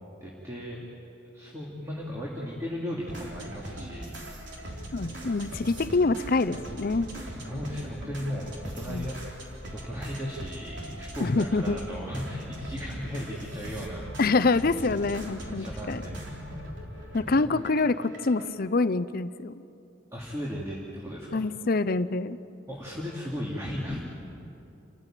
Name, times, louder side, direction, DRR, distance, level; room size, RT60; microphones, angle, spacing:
voice 1, 0.2-0.8 1.3-4.2 4.6-4.8 7.2-9.2 9.7-14.4 15.6-16.2 17.1-17.5 20.1-21.4 22.7-24.0, equal, 15° right, -4 dB, 2.6 m, -36 dB
sound 1, 3.1-18.5, right 1 dB, 65° right, 3.7 m, -40 dB
voice 2, 4.9-7.1 8.9-9.1 11.2-11.8 14.2-16.0 17.1-19.5 21.3-22.4, left 3 dB, 50° left, 13 dB, 0.6 m, -26 dB
29.0 x 15.0 x 9.0 m, 2.7 s
head